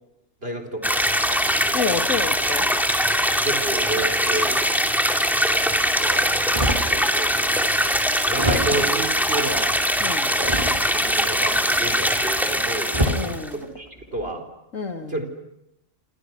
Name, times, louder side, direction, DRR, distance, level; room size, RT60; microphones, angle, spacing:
voice 1, 0.4-1.0 1.3-1.8 3.4-4.6 5.7-6.4 6.9-8.0 8.3-9.8 10.3-14.4 15.1-15.2, right 2 dB, 45° right, 4.6 m, -31 dB
sound 1, 0.8-13.5, equal, ahead, 2.5 m, -22 dB
voice 2, 1.7-2.7 10.0-10.4 13.1-13.7 14.7-15.2, left 5 dB, 75° left, 2.6 m, -29 dB
sound 2, 6.5-7.0 7.6-7.7 8.3-9.0 10.4-11.1 12.3-12.4 12.9-13.3 14.0-14.3, equal, 25° right, 3.0 m, -25 dB
29.5 x 27.0 x 6.2 m
omnidirectional pair, 1.4 m